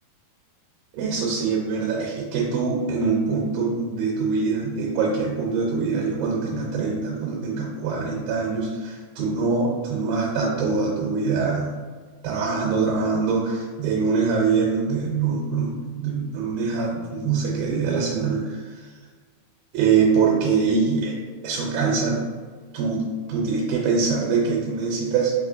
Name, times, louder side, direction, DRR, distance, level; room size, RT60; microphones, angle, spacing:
voice 1, 0.9-11.7 12.2-18.9 19.7-21.2 21.4-22.2 22.7-25.4, right 5 dB, 80° right, -3 dB, 2.4 m, -24 dB
5.9 x 3.1 x 2.5 m, 1.5 s
omnidirectional pair, 4.5 m